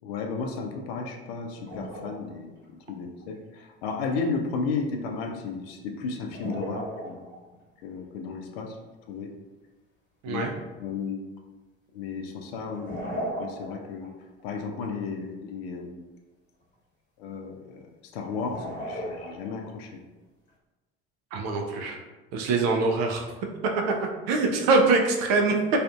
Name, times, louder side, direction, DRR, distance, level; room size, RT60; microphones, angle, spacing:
voice 1, 0.0-2.5 2.9-7.3 7.8-8.8 9.1-9.3 10.3-10.4 10.8-11.2 11.9-13.0 13.4-14.1 14.4-16.0 17.2-17.9 18.1-20.0, left 4 dB, 70° left, 3 dB, 0.5 m, -33 dB
sound 1, 1.6-2.3 2.6-2.7 3.2-3.3 6.2-7.6 11.0-11.1 12.6-14.1 14.4-14.5 18.3-19.8, equal, 35° left, 1.2 m, -36 dB
voice 2, 21.3-22.0 22.3-23.3 23.9-24.0 24.3-25.6, right 3 dB, 60° right, 2 dB, 0.5 m, -23 dB
2.5 x 2.4 x 2.2 m, 1.2 s
hypercardioid pair, 60°, 31 cm